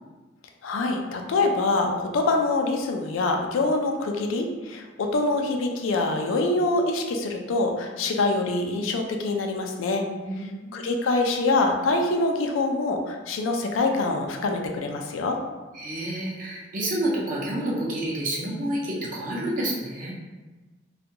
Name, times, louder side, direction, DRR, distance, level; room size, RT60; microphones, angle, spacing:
voice 1, 0.6-10.0 10.7-15.4, left 2 dB, 90° left, 3 dB, 0.4 m, -25 dB
voice 2, 10.2-10.9 15.7-20.1, right 1 dB, 45° right, -4 dB, 0.6 m, -29 dB
2.4 x 2.2 x 2.7 m, 1.2 s
head